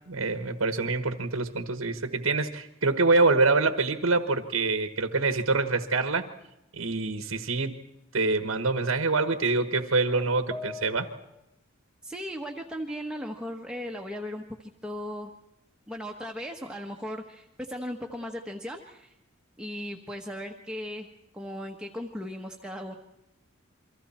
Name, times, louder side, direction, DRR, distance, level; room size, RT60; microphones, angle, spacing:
voice 1, 0.1-6.3 6.7-7.8 8.1-11.1, right 3 dB, 90° right, 8 dB, 1.4 m, -25 dB
sound 1, 9.3-11.4, left 2 dB, 15° left, 2.7 m, -43 dB
voice 2, 12.0-15.3 15.9-19.2 19.6-21.1 21.3-23.0, equal, 5° right, 1 dB, 1.3 m, -37 dB
29.0 x 24.0 x 4.4 m, 0.87 s
head